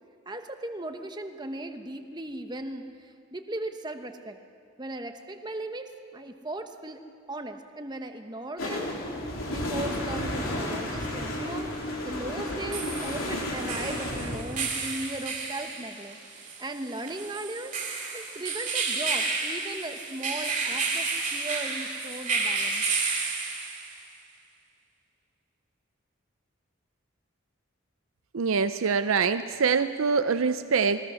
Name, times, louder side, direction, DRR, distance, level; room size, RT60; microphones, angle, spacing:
voice 1, 0.3-4.4 4.8-7.0 7.3-8.9 9.5-11.7 12.0-17.7 18.1-22.8, right 1 dB, 20° right, 6 dB, 1.0 m, -37 dB
sound 1, 8.6-14.4, left 1 dB, 85° left, 3.8 m, -32 dB
sound 2, 9.8-9.9 12.4-24.0, right 4 dB, 35° right, 3.0 m, -31 dB
voice 2, 28.3-31.1, right 5 dB, 85° right, 10 dB, 0.6 m, -24 dB
22.0 x 20.0 x 6.3 m, 2.4 s
head